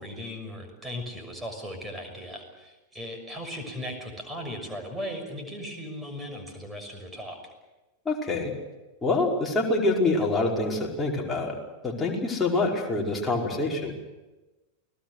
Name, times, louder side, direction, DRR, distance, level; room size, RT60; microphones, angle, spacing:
voice 1, 0.0-7.4, equal, 10° right, 4 dB, 6.2 m, -37 dB
voice 2, 8.0-8.5 9.0-11.6 11.8-13.9, left 2 dB, 10° left, -2 dB, 5.1 m, -26 dB
29.5 x 19.5 x 6.6 m, 1.1 s
figure-of-eight pair, 90°, 0 cm